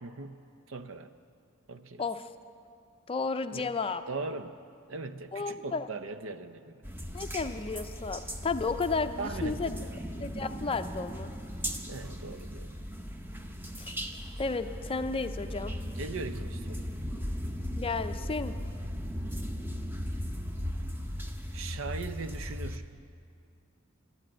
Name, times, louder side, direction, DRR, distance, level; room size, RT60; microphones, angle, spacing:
voice 1, 0.0-1.1 1.7-2.0 3.5-3.7 4.1-4.6 4.9-6.8 9.2-10.0 11.9-12.7 15.9-16.9 21.5-22.9, right 3 dB, 70° right, 11 dB, 0.6 m, -40 dB
voice 2, 3.1-4.0 5.3-5.9 7.1-9.8 10.1-11.3 13.8-13.9 14.4-15.7 17.8-18.6, left 4 dB, 25° left, 9 dB, 0.5 m, -33 dB
sound 1, 6.8-22.8, equal, 10° right, 0.8 m, -37 dB
13.0 x 10.0 x 9.0 m, 2.5 s
head